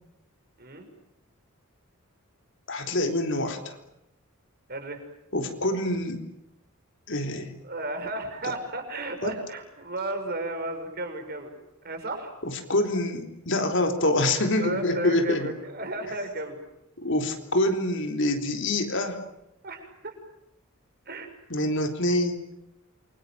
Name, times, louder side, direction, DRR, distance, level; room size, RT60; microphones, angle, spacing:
voice 1, 2.7-3.7 5.3-6.2 7.1-7.5 8.4-8.5 9.2-9.4 12.4-15.5 17.0-19.2 21.5-22.4, left 1 dB, 55° left, 5 dB, 3.9 m, -26 dB
voice 2, 4.7-5.0 7.6-11.6 11.8-12.3 14.6-16.6 19.6-20.1 21.1-21.3, right 2 dB, 45° right, 5 dB, 6.3 m, -34 dB
28.5 x 24.5 x 7.7 m, 0.85 s
head